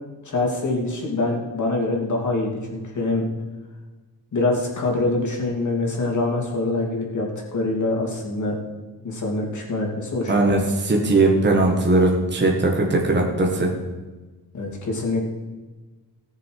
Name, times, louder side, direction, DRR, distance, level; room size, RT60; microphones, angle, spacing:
voice 1, 0.2-3.3 4.3-8.5 9.0-10.5 14.5-15.2, left 2 dB, 45° left, -1 dB, 3.0 m, -24 dB
voice 2, 10.3-13.7, right 2 dB, 25° right, 0 dB, 1.8 m, -19 dB
18.5 x 6.9 x 4.8 m, 1.3 s
wide cardioid pair, 165°, 41 cm